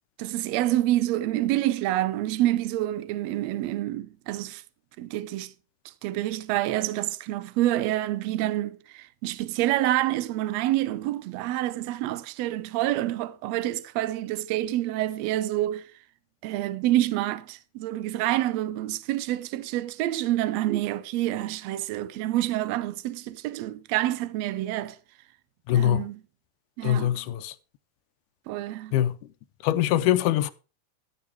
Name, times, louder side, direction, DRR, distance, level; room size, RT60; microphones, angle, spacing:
voice 1, 0.2-4.6 5.0-5.5 6.0-15.9 16.4-25.0 25.7-26.2 26.8-27.2 28.5-28.9, right 14 dB, 75° right, 1.7 m, -27 dB
voice 2, 25.7-26.1 26.8-27.6 28.9-29.2 29.6-30.5, left 12 dB, 90° left, 2.2 m, -23 dB
13.0 x 7.5 x 4.5 m
omnidirectional pair, 3.5 m